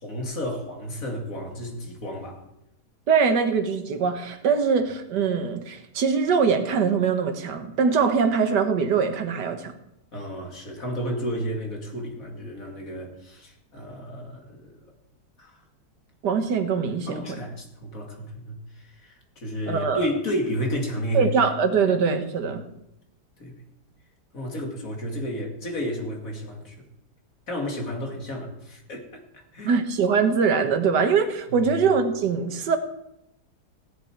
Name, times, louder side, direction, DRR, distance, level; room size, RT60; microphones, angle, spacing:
voice 1, 0.0-2.4 10.1-14.7 15.4-15.6 17.1-21.3 21.8-21.9 23.4-23.6 24.3-26.9 27.5-29.8 31.5-31.7, equal, 55° left, 1 dB, 2.8 m, -32 dB
voice 2, 3.1-9.7 16.2-17.3 19.7-20.1 21.1-22.7 29.6-32.8, right 5 dB, 90° right, 8 dB, 1.8 m, -22 dB
16.5 x 11.0 x 4.7 m, 0.84 s
omnidirectional pair, 1.8 m